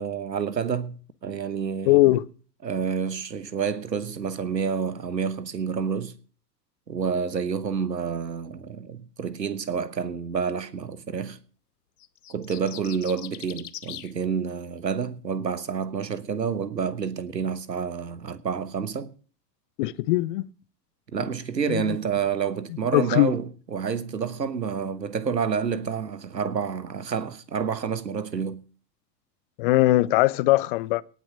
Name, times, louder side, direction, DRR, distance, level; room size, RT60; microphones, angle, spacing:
voice 1, 0.0-2.1 2.6-6.1 6.9-11.4 12.3-19.1 21.1-28.6, right 6 dB, 80° right, 1.2 m, -29 dB
voice 2, 1.9-2.3 19.8-20.4 21.7-22.0 22.9-23.3 29.6-31.0, left 18 dB, 35° left, 0.6 m, -20 dB
sound 1, 12.0-14.1, left 12 dB, 65° left, 1.0 m, -41 dB
18.0 x 6.1 x 7.4 m
figure-of-eight pair, 95°, 49 cm